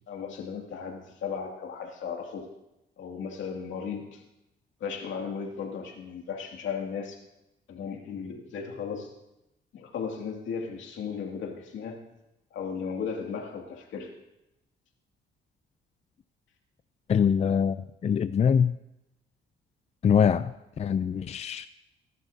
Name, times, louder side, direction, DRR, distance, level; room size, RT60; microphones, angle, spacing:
voice 1, 0.1-2.5 3.0-4.2 4.8-7.2 7.7-9.1 9.7-12.0 12.5-14.1, left 6 dB, 75° left, 1 dB, 2.4 m, -36 dB
voice 2, 17.1-17.8 18.0-18.7 20.0-21.7, left 7 dB, 35° left, 12 dB, 0.4 m, -23 dB
18.5 x 11.0 x 2.8 m, 0.90 s
cardioid pair, 90°, 20 cm